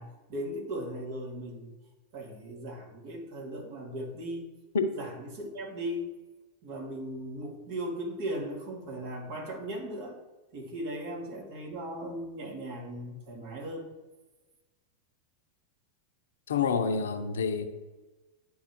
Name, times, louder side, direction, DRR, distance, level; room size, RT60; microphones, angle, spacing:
voice 1, 0.0-1.7 2.1-4.5 4.9-6.1 6.6-10.2 10.5-13.9, right 1 dB, 55° right, 0 dB, 2.1 m, -37 dB
voice 2, 16.5-17.6, left 5 dB, 75° left, 8 dB, 0.7 m, -27 dB
11.0 x 4.0 x 3.0 m, 1.2 s
hypercardioid pair, 95°, 0 cm